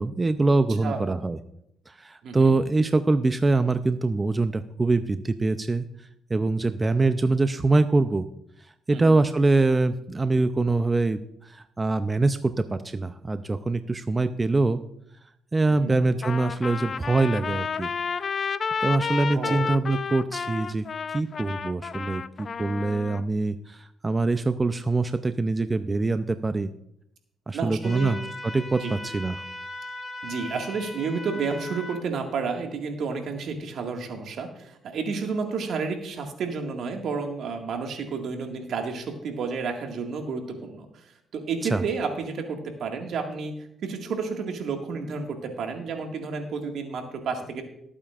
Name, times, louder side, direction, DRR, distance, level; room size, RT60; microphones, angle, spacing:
voice 1, 0.0-1.4 1.9-8.3 8.9-14.8 15.5-17.9 18.3-18.4 18.8-26.7 27.5-29.4 41.7-41.8, right 3 dB, 25° right, 10 dB, 0.5 m, -24 dB
voice 2, 0.8-1.2 2.2-2.5 8.9-9.2 15.7-16.0 19.3-19.6 27.5-28.2 28.7-28.9 30.2-41.1 41.3-43.5 43.8-47.6, right 5 dB, 70° right, 3 dB, 1.9 m, -31 dB
Trumpet, 16.2-23.2, left 6 dB, 45° left, 0.5 m, -31 dB
sound 1, 27.8-32.0, left 1 dB, 15° left, 4.8 m, -38 dB
19.0 x 8.7 x 2.5 m, 0.76 s
cardioid pair, 90°, 0 cm